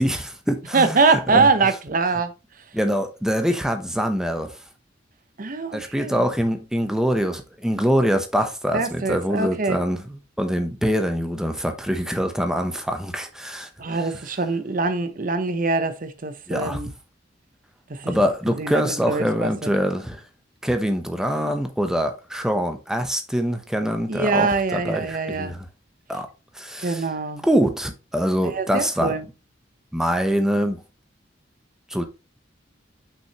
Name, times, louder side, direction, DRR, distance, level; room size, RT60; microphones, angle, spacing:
voice 1, 0.0-1.0 1.3-1.5 2.7-4.5 5.7-13.7 16.5-16.8 18.1-20.2 20.6-25.6 26.1-26.3 26.5-27.0 27.4-29.1 29.9-30.8 31.9-32.0, equal, 5° right, 0.9 m, -24 dB
voice 2, 0.7-2.3 5.4-6.2 8.7-9.8 13.8-16.9 17.9-18.1 18.6-19.7 24.1-25.6 26.8-27.5 28.4-29.3, right 3 dB, 45° right, 0.8 m, -23 dB
6.2 x 5.7 x 3.0 m
head